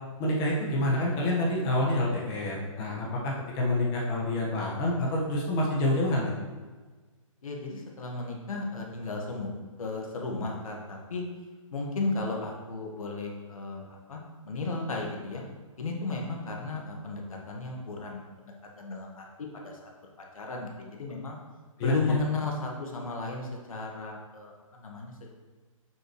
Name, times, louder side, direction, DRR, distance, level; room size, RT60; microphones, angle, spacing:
voice 1, 0.2-6.3 21.8-22.2, left 1 dB, 25° left, -3 dB, 1.4 m, -27 dB
voice 2, 7.4-9.5 9.8-11.2 11.7-15.4 15.8-19.2 19.6-19.9 20.3-21.4 21.8-25.3, left 3 dB, 80° left, 0 dB, 1.7 m, -34 dB
7.4 x 6.2 x 3.2 m, 1.4 s
hypercardioid pair, 150°, 18 cm